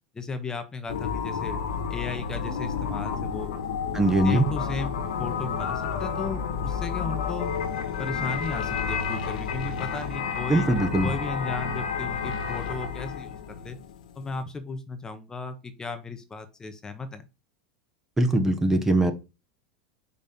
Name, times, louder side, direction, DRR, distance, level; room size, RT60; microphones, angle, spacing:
voice 1, 0.1-1.6 1.9-3.5 4.2-7.5 8.0-10.7 11.0-13.8 14.1-17.3, left 3 dB, 15° left, 9 dB, 1.0 m, -35 dB
sound 1, 0.9-14.4, left 6 dB, 85° left, 1.4 m, -30 dB
voice 2, 3.9-4.5 10.5-11.1 18.2-19.1, right 1 dB, 10° right, 7 dB, 0.9 m, -21 dB
5.4 x 4.2 x 5.3 m, 0.29 s
supercardioid pair, 120°, 4 cm